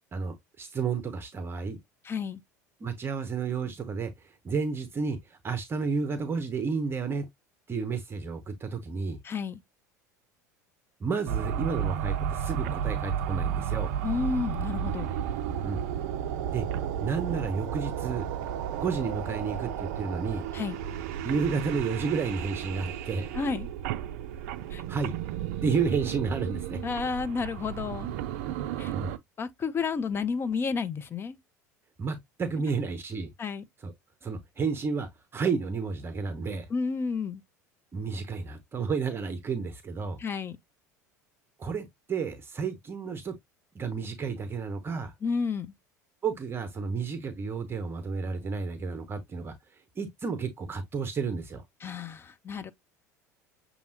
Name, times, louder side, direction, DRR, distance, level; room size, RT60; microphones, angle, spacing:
voice 1, 0.1-1.8 2.8-7.3 7.7-9.2 11.0-13.9 15.6-15.8 16.5-16.7 17.0-18.3 18.8-20.5 21.2-23.3 24.9-25.2 25.6-26.8 28.9-29.1 32.0-33.3 33.8-33.9 34.2-36.7 37.9-40.2 41.6-43.4 43.7-45.1 46.2-51.6, right 5 dB, 25° right, 0.7 m, -31 dB
voice 2, 2.0-2.4 9.2-9.6 14.0-15.1 20.5-20.8 23.3-23.7 24.7-24.8 26.8-28.1 28.8-28.9 29.4-31.4 33.4-33.6 36.7-37.4 40.2-40.6 45.2-45.7 51.8-52.7, left 5 dB, 25° left, 0.6 m, -31 dB
sound 1, 11.3-29.2, right 9 dB, 60° right, 0.4 m, -33 dB
6.8 x 2.7 x 2.7 m
figure-of-eight pair, 70°, 9 cm